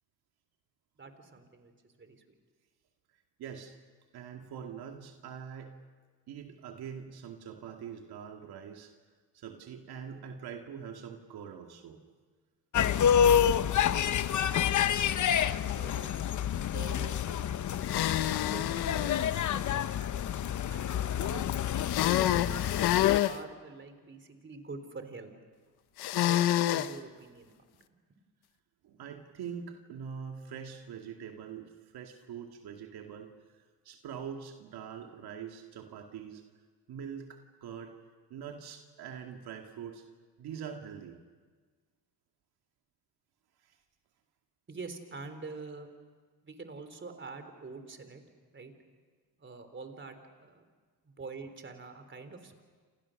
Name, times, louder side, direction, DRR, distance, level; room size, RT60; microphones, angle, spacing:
voice 1, 1.0-2.4 14.3-16.2 16.7-18.1 18.4-20.0 20.7-21.5 22.1-25.3 26.2-26.4 26.7-27.9 44.7-45.9 46.4-48.2 48.5-48.7 49.4-50.6 51.0-52.6, right 4 dB, 30° right, 8 dB, 3.7 m, -46 dB
voice 2, 3.4-3.7 4.1-5.8 6.3-8.9 9.3-12.0 28.8-33.6 33.8-36.4 36.9-37.9 38.3-40.0 40.4-41.2 43.6-43.8, right 7 dB, 80° right, 3 dB, 2.2 m, -43 dB
sound 1, 12.7-23.2, left 9 dB, 50° left, 0.9 m, -28 dB
sound 2, 17.8-19.3 21.9-23.4 26.0-26.9, left 13 dB, 85° left, 1.0 m, -28 dB
29.0 x 28.0 x 6.5 m, 1.5 s
cardioid pair, 105°, 38 cm